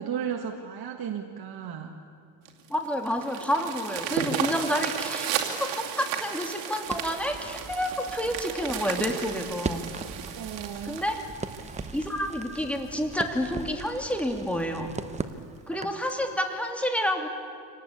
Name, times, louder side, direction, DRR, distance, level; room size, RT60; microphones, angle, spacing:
voice 1, 0.0-1.9 10.4-11.0, right 8 dB, 55° right, 3 dB, 1.8 m, -34 dB
sound 1, 2.5-12.9 13.5-13.6 14.0-14.1 14.5-14.6 14.9-15.2 16.1-16.2, right 9 dB, 80° right, 2.7 m, -34 dB
voice 2, 2.7-9.8 10.8-11.2 11.9-14.9 15.7-17.3, equal, 5° left, 4 dB, 2.7 m, -29 dB
Crackle, 6.9-16.1, right 4 dB, 15° right, 0.9 m, -39 dB
25.5 x 19.0 x 8.4 m, 2.3 s
cardioid pair, 115°, 45 cm